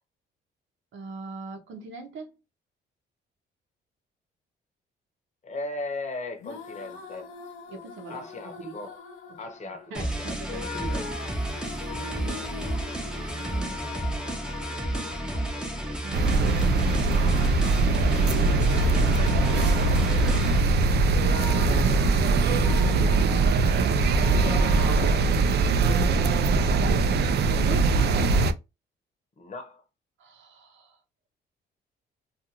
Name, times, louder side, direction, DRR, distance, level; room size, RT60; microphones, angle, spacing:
voice 1, 0.9-2.3 7.7-8.3 8.6-8.8 9.3-11.7 12.0-12.5 13.3-14.8 16.0-17.1 27.5-28.0 30.2-31.0, right 3 dB, 75° right, 0.8 m, -41 dB
voice 2, 5.4-7.3 8.1-9.0 9.4-10.3 12.0-12.5 24.2-25.8 29.4-29.8, left 2 dB, 35° left, 0.8 m, -38 dB
sound 1, 6.4-25.2, left 6 dB, 80° left, 0.6 m, -41 dB
sound 2, 9.9-20.6, right 1 dB, 5° right, 0.7 m, -31 dB
sound 3, 16.1-28.5, right 3 dB, 55° right, 0.4 m, -22 dB
2.5 x 2.4 x 2.8 m
cardioid pair, 90°, 20 cm